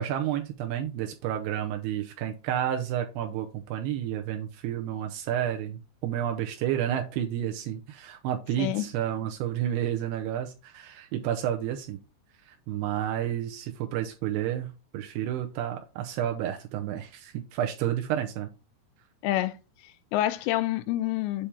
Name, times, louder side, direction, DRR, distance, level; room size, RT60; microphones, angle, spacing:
voice 1, 0.0-12.0 12.5-18.5, right 10 dB, 80° right, 2.5 m, -30 dB
voice 2, 19.2-19.6 19.8-21.5, left 14 dB, 85° left, 2.7 m, -28 dB
8.5 x 3.4 x 4.3 m
omnidirectional pair, 5.2 m